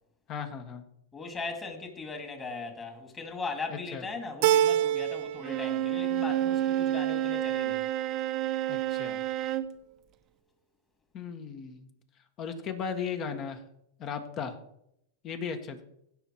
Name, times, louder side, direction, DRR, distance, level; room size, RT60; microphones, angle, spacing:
voice 1, 0.3-0.9 3.7-4.0 8.7-9.2 11.1-11.9 12.4-13.6 14.0-14.5 15.2-15.8, left 6 dB, 40° left, 1.7 m, -36 dB
voice 2, 1.1-7.8, left 4 dB, 20° left, 2.5 m, -38 dB
Keyboard (musical), 4.4-5.5 5.8-6.6, right 12 dB, 60° right, 0.4 m, -26 dB
Bowed string instrument, 5.4-9.8, right 12 dB, 40° right, 0.8 m, -29 dB
16.5 x 5.7 x 4.6 m
hypercardioid pair, 120°, 0 cm